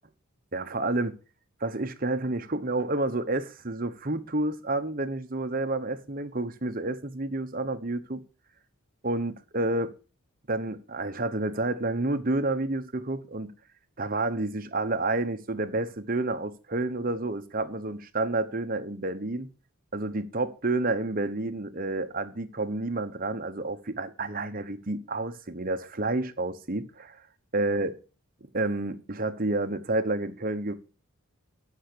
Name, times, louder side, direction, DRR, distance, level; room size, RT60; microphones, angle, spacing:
voice 1, 0.5-1.2 1.6-8.2 9.0-9.9 10.5-13.5 14.0-19.5 19.9-27.2 27.5-27.9 28.5-30.8, right 2 dB, 40° right, 1.1 m, -29 dB
14.0 x 5.8 x 6.8 m
head